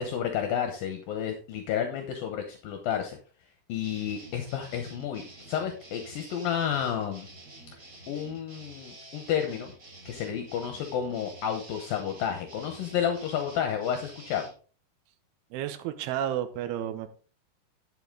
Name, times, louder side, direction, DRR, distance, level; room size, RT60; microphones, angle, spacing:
voice 1, 0.0-3.2 3.7-7.3 8.1-9.7 10.1-14.4, left 8 dB, 70° left, 5 dB, 2.5 m, -31 dB
sound 1, 3.8-14.5, right 2 dB, 25° right, 2.8 m, -49 dB
voice 2, 15.5-17.1, right 11 dB, 80° right, 8 dB, 2.8 m, -31 dB
11.0 x 7.3 x 3.8 m, 0.39 s
omnidirectional pair, 4.7 m